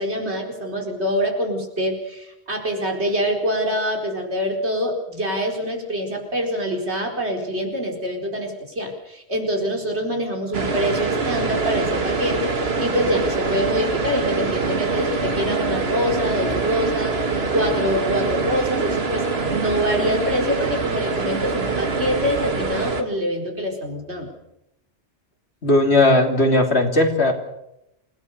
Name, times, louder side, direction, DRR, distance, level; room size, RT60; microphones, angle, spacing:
voice 1, 0.0-17.2 17.5-19.2 19.5-24.3, equal, 85° right, 2 dB, 4.9 m, -25 dB
sound 1, 10.5-23.0, right 4 dB, 65° right, 2.1 m, -24 dB
voice 2, 25.6-27.3, left 2 dB, 75° left, 3 dB, 3.5 m, -17 dB
28.5 x 18.5 x 6.9 m, 0.85 s
omnidirectional pair, 1.1 m